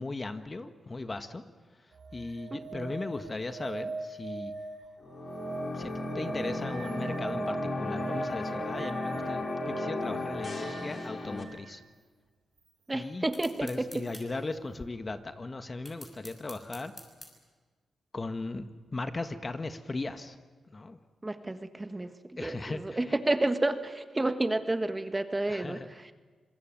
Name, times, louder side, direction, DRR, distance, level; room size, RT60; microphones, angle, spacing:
voice 1, 0.0-1.4 2.1-4.5 5.7-9.5 9.8-11.8 12.9-13.2 13.6-16.9 18.1-18.7 18.9-20.4 20.7-21.0 22.4-23.0 25.5-25.9, left 3 dB, 30° left, 9 dB, 1.6 m, -37 dB
sound 1, 1.9-11.7 14.1-14.2, right 3 dB, 65° right, 4.8 m, -40 dB
voice 2, 2.5-3.0 12.9-14.1 21.2-26.1, right 2 dB, 20° right, 9 dB, 1.4 m, -31 dB
sound 2, 5.0-11.4, left 2 dB, 50° left, 3.4 m, -35 dB
sound 3, 13.3-14.3 15.9-17.3, left 1 dB, 10° left, 6.8 m, -47 dB
26.0 x 20.5 x 9.1 m, 1.4 s
cardioid pair, 70°, 0 cm